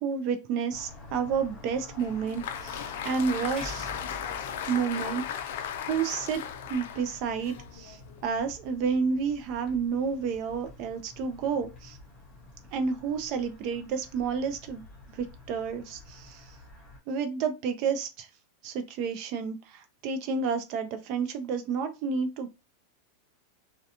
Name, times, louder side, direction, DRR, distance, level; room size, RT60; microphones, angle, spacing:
voice 1, 0.0-3.9 4.7-5.5 5.9-6.4 6.7-12.0 12.7-14.8 15.1-16.4 17.1-18.3 18.6-22.5, right 6 dB, 40° right, 0.4 m, -30 dB
sound 1, 0.7-17.0, left 2 dB, 25° left, 0.9 m, -49 dB
Applause, 2.0-8.3, left 9 dB, 65° left, 0.4 m, -37 dB
sound 2, 3.6-5.8, equal, 20° right, 1.3 m, -45 dB
2.3 x 2.2 x 2.8 m
supercardioid pair, 160°, 0 cm